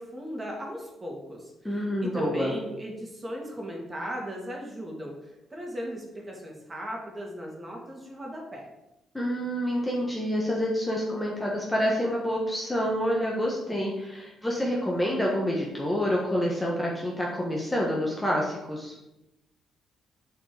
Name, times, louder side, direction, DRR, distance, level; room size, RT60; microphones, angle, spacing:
voice 1, 0.0-5.1 5.5-8.7, equal, 20° right, -1 dB, 2.2 m, -37 dB
voice 2, 1.6-2.5 9.1-18.9, equal, 10° left, -3 dB, 1.4 m, -28 dB
7.5 x 4.4 x 5.0 m, 0.94 s
cardioid pair, 90°, 0 cm